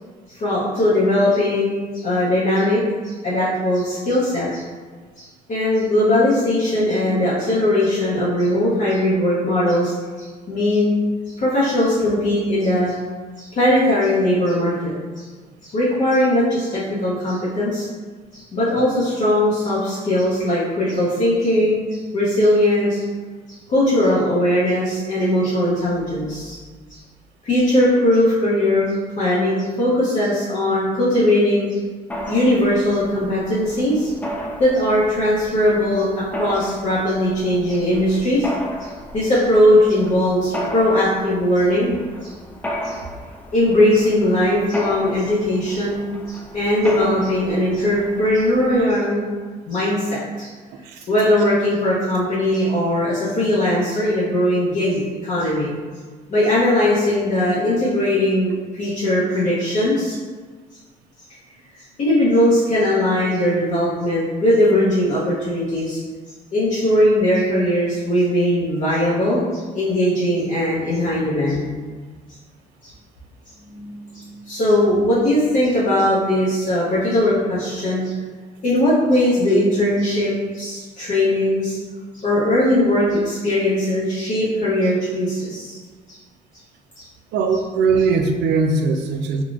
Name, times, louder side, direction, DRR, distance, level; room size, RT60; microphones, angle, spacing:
voice 1, 0.3-4.6 5.2-11.0 11.3-13.0 13.4-15.3 15.6-17.9 18.3-23.0 23.5-26.6 26.9-27.0 27.4-31.8 32.3-34.1 34.6-38.5 38.8-41.9 42.2-42.3 42.8-43.0 43.5-46.0 46.3-49.3 49.7-50.5 51.1-55.7 56.3-60.2 61.7-66.0 66.5-71.8 72.8-72.9 73.7-78.1 78.6-81.8 82.1-85.8 86.1-86.2 87.0-87.1, left 1 dB, 45° left, -10 dB, 0.8 m, -19 dB
Mechanisms, 32.1-48.9, equal, 10° left, 0.3 m, -34 dB
voice 2, 87.3-89.4, right 4 dB, 80° right, 4 dB, 0.4 m, -20 dB
3.7 x 2.2 x 2.4 m, 1.4 s
cardioid pair, 110°, 17 cm